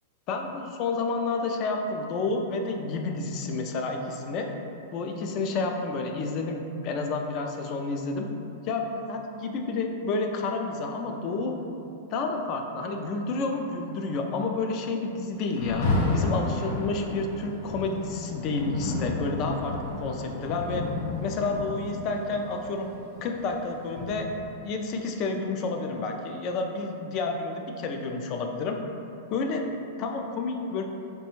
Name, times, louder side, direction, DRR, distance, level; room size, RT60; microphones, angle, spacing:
voice 1, 0.3-4.5 4.9-8.3 8.6-11.6 12.1-15.9 16.1-20.9 21.2-22.9 23.2-24.3 24.6-28.8 29.3-30.8, left 3 dB, 40° left, 3 dB, 0.4 m, -30 dB
Rain, 15.5-24.6, left 2 dB, 65° left, 0.9 m, -32 dB
4.1 x 2.2 x 3.0 m, 2.7 s
hypercardioid pair, 120°, 0 cm